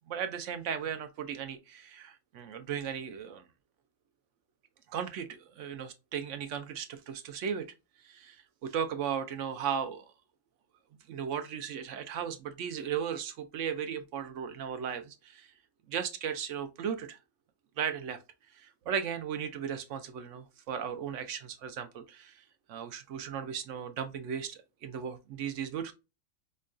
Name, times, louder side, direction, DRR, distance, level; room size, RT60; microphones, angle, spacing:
voice 1, 0.1-3.5 4.9-7.7 8.0-10.1 11.1-15.5 15.9-17.2 17.8-18.2 18.5-22.4 22.7-25.9, right 8 dB, 70° right, 0.9 m, -36 dB
5.3 x 2.2 x 2.4 m
omnidirectional pair, 1.4 m